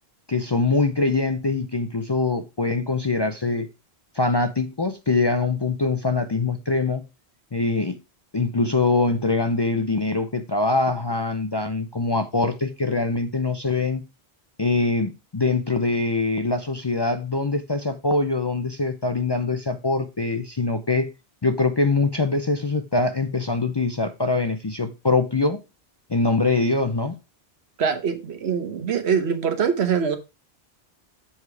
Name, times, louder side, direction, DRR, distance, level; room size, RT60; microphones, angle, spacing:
voice 1, 0.3-3.7 4.2-7.0 7.5-8.0 8.3-14.0 14.6-21.1 21.4-25.6 26.1-27.2, left 3 dB, 35° left, 0.5 m, -23 dB
voice 2, 27.8-30.2, right 7 dB, 85° right, 1.3 m, -23 dB
7.2 x 4.9 x 4.7 m
omnidirectional pair, 1.1 m